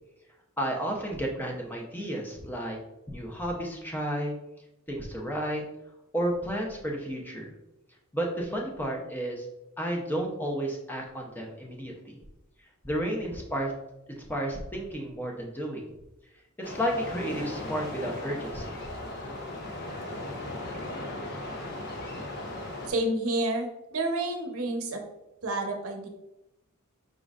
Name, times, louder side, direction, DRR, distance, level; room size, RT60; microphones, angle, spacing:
voice 1, 0.6-2.8 3.1-4.3 4.9-5.6 6.1-7.5 8.1-9.5 9.8-12.2 12.8-13.7 14.1-15.9 16.6-18.9, equal, 10° left, 0 dB, 0.7 m, -32 dB
sound 1, 16.6-22.9, left 1 dB, 50° left, 0.8 m, -37 dB
voice 2, 22.9-25.0 25.4-26.1, right 2 dB, 70° right, 3 dB, 0.8 m, -29 dB
5.2 x 3.8 x 2.4 m, 0.93 s
head